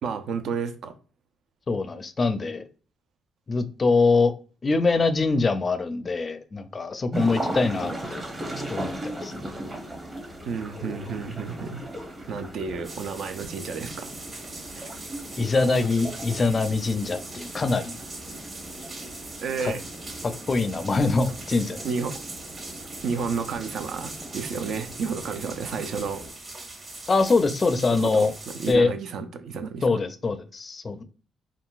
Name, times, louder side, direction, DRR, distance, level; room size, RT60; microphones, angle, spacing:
voice 1, 0.0-0.9 10.5-11.8 12.3-14.1 14.8-14.9 19.4-19.8 21.8-22.2 23.0-26.2 28.1-29.8, right 5 dB, 70° right, 0.4 m, -31 dB
voice 2, 1.7-2.6 3.5-4.3 4.6-8.2 8.7-9.5 15.4-18.0 19.6-19.7 20.2-21.8 27.1-28.3 28.7-28.9 29.8-31.0, left 3 dB, 35° left, 0.4 m, -24 dB
sound 1, 7.1-26.3, right 1 dB, 25° right, 0.8 m, -38 dB
sound 2, 12.8-28.7, right 2 dB, 40° right, 1.3 m, -41 dB
3.7 x 2.3 x 2.3 m
cardioid pair, 90°, 0 cm